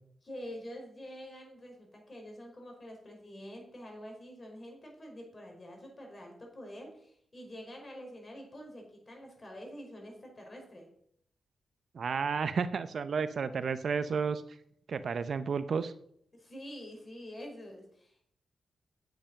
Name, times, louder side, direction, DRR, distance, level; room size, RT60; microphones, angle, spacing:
voice 1, 0.2-10.9 16.3-18.2, equal, 40° left, 1 dB, 5.4 m, -47 dB
voice 2, 11.9-14.4 14.9-15.9, right 5 dB, 65° right, 13 dB, 0.7 m, -32 dB
8.7 x 8.0 x 6.3 m, 0.67 s
supercardioid pair, 45°, 0 cm